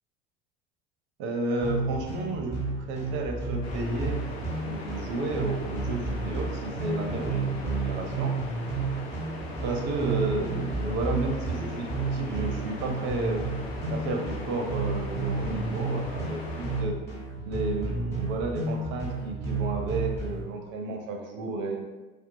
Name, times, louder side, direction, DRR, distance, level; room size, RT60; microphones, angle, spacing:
voice 1, 1.2-4.2 4.6-8.3 9.6-13.5 13.9-17.0 17.4-21.8, right 3 dB, 40° right, 2 dB, 0.5 m, -32 dB
sound 1, 1.6-20.4, right 3 dB, 10° left, 1.0 m, -32 dB
sound 2, 3.6-16.8, left 2 dB, 80° left, 0.5 m, -40 dB
2.5 x 2.3 x 2.5 m, 1.2 s
figure-of-eight pair, 70°, 31 cm